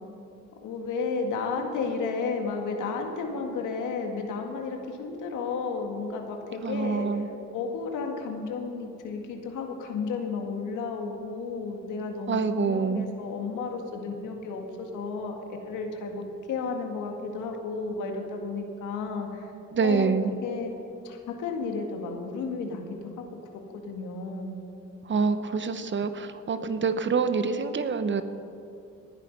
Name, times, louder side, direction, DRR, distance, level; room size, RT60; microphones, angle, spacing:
voice 1, 0.6-7.1 7.5-16.2 16.5-19.5 19.8-20.1 20.4-20.7 21.0-22.9 23.2-23.3 23.5-24.6, left 4 dB, 85° left, 3 dB, 2.1 m, -33 dB
voice 2, 6.6-7.3 12.3-13.1 19.7-20.3 25.0-28.2, right 5 dB, 40° right, 10 dB, 1.0 m, -26 dB
18.5 x 10.5 x 5.4 m, 2.7 s
cardioid pair, 90°, 30 cm